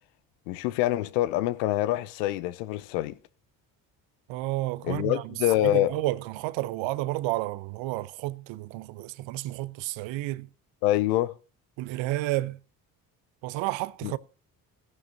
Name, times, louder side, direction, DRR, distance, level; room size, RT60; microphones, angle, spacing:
voice 1, 0.5-3.2 4.8-5.9 10.8-11.3 14.0-14.1, left 15 dB, 80° left, 0.8 m, -25 dB
voice 2, 4.3-5.3 5.6-10.5 11.8-12.6 13.4-14.2, right 17 dB, 65° right, 0.7 m, -31 dB
16.0 x 11.0 x 2.7 m
hypercardioid pair, 45°, 48 cm